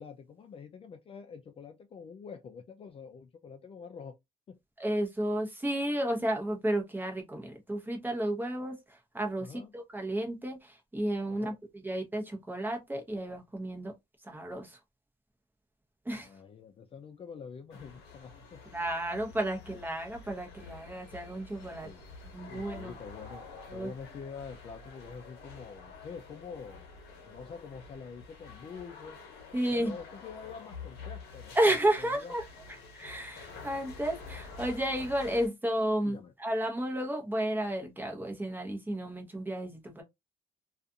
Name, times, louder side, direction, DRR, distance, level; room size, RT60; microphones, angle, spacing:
voice 1, 0.0-4.2 4.5-4.6 9.4-9.7 11.3-11.6 16.2-18.6 21.8-22.1 22.5-26.9 27.3-29.2 29.7-32.4 36.0-36.3, left 6 dB, 35° left, 0.4 m, -46 dB
voice 2, 4.8-13.9 14.2-14.8 16.0-16.3 18.7-21.9 22.3-23.0 23.7-23.9 29.5-30.0 31.5-32.4 32.9-40.0, right 1 dB, 10° right, 0.9 m, -32 dB
sound 1, 17.7-35.5, left 4 dB, 80° left, 1.0 m, -48 dB
2.4 x 2.4 x 2.6 m
cardioid pair, 110°, 17 cm